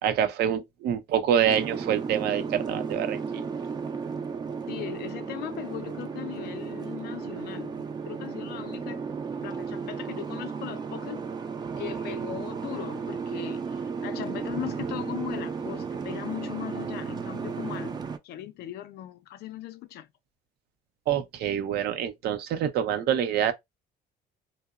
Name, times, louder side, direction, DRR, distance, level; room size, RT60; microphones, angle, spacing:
voice 1, 0.0-3.5 21.1-23.5, right 9 dB, 70° right, 0.6 m, -26 dB
Boat Water vehicle, 1.4-18.2, right 5 dB, 25° right, 0.4 m, -34 dB
voice 2, 4.7-9.1 9.4-11.2 11.8-18.0 18.2-20.1, left 13 dB, 75° left, 0.4 m, -38 dB
2.8 x 2.0 x 2.3 m
cardioid pair, 110°, 17 cm